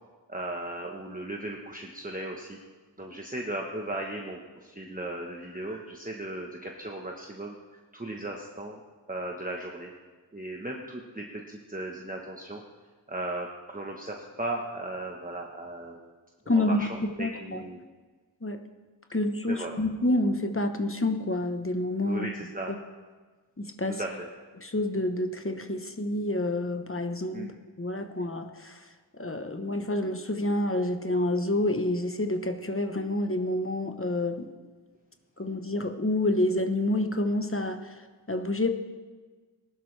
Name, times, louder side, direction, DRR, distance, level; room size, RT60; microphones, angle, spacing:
voice 1, 0.3-2.6 3.0-7.6 7.9-8.8 9.1-9.9 10.3-12.6 13.1-16.0 16.5-17.8 19.5-19.8 22.1-22.7 24.0-24.3 27.3-27.5, right 1 dB, 20° right, 0 dB, 1.1 m, -36 dB
voice 2, 16.5-17.6 18.4-18.6 19.1-22.3 23.6-24.0 24.6-28.9 29.1-34.5 35.4-38.7, left 1 dB, 30° left, 6 dB, 1.0 m, -28 dB
19.0 x 11.5 x 3.3 m, 1.4 s
wide cardioid pair, 55°, 43 cm